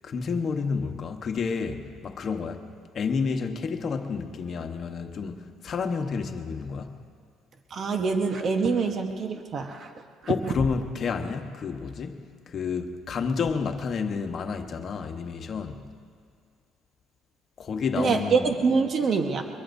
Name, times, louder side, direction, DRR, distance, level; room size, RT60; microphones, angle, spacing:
voice 1, 0.0-2.6 2.9-6.9 10.3-15.8 17.6-18.5, left 5 dB, 45° left, 5 dB, 1.2 m, -30 dB
voice 2, 7.7-9.9 10.2-10.3 18.0-19.4, right 5 dB, 45° right, 4 dB, 1.1 m, -25 dB
23.5 x 22.0 x 2.7 m, 2.1 s
cardioid pair, 105°, 0 cm